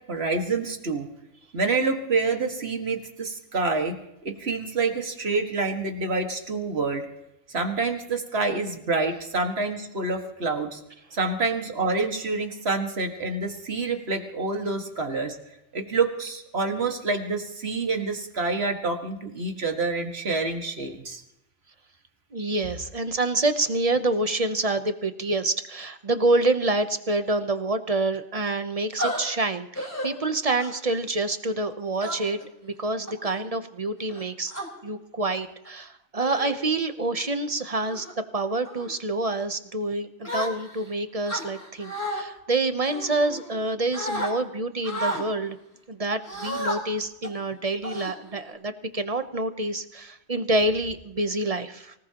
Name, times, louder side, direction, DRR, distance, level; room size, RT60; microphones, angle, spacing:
voice 1, 0.1-1.1 1.5-4.0 4.2-7.1 7.5-10.8 11.1-15.4 15.7-21.2, right 3 dB, 65° right, 4 dB, 2.1 m, -27 dB
voice 2, 22.3-34.5 34.8-38.1 38.3-45.6 45.9-51.9, right 2 dB, 35° right, 10 dB, 0.8 m, -27 dB
sound 1, 29.0-29.2 29.8-30.1 30.6-30.9 32.0-32.4 33.1-33.4 34.1-34.7 35.5-35.7 36.2-36.6 37.1-37.3 37.8-38.1 38.6-38.9 40.2-40.9 41.3-42.2 42.8-43.6 43.9-44.3 44.8-45.2 46.2-46.8 47.2-47.4 47.8-48.5, equal, 15° left, 4.5 m, -32 dB
24.5 x 18.5 x 3.0 m, 0.85 s
omnidirectional pair, 1.2 m